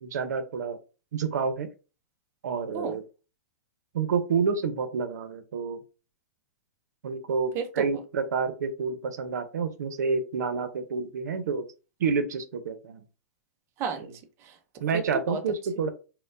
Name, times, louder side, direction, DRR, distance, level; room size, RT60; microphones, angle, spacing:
voice 1, 0.0-0.8 1.1-1.7 2.4-3.0 3.9-5.8 7.0-11.6 12.0-13.0 14.8-15.9, right 5 dB, 80° right, 0.7 m, -29 dB
voice 2, 7.5-8.0 13.8-15.4, right 6 dB, 25° right, 0.5 m, -33 dB
4.3 x 2.1 x 2.5 m
hypercardioid pair, 150°, 9 cm